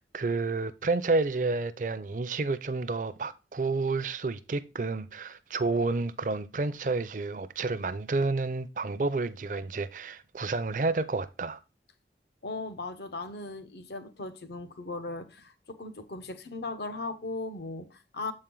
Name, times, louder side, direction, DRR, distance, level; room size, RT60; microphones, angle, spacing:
voice 1, 0.0-11.6, right 3 dB, 45° right, 0.5 m, -30 dB
voice 2, 12.4-18.3, left 3 dB, 65° left, 0.8 m, -38 dB
7.6 x 4.4 x 3.7 m
head